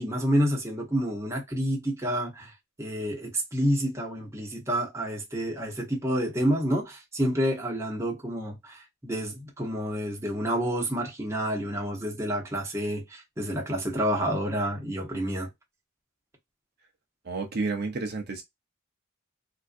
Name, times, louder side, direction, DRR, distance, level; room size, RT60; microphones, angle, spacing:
voice 1, 0.0-2.5 2.8-15.5, equal, 15° right, 0.9 m, -29 dB
voice 2, 17.2-18.4, right 3 dB, 50° right, 0.6 m, -30 dB
3.6 x 2.5 x 2.5 m
head